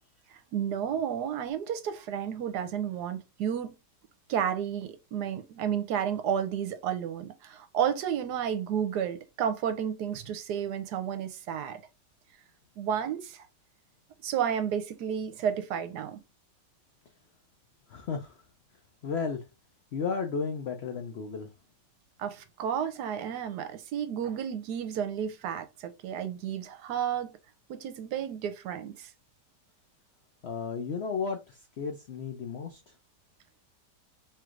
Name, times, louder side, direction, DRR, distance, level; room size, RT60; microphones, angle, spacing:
voice 1, 0.5-3.7 4.3-11.8 12.8-13.5 14.2-16.2 22.2-27.3 27.7-29.1, right 8 dB, 75° right, 1.1 m, -32 dB
voice 2, 17.9-18.4 19.0-19.4 19.9-21.5 30.4-32.8, left 5 dB, 90° left, 0.5 m, -33 dB
4.5 x 3.1 x 2.5 m
omnidirectional pair, 1.9 m